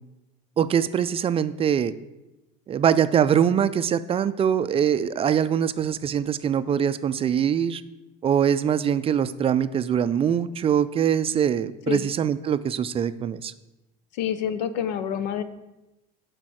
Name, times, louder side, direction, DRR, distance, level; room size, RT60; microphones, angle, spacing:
voice 1, 0.6-1.9 2.7-7.8 8.2-13.5, right 8 dB, 25° right, 13 dB, 0.4 m, -23 dB
voice 2, 14.1-15.4, left 9 dB, 85° left, 12 dB, 0.7 m, -27 dB
7.6 x 4.7 x 6.2 m, 0.98 s
supercardioid pair, 105°, 21 cm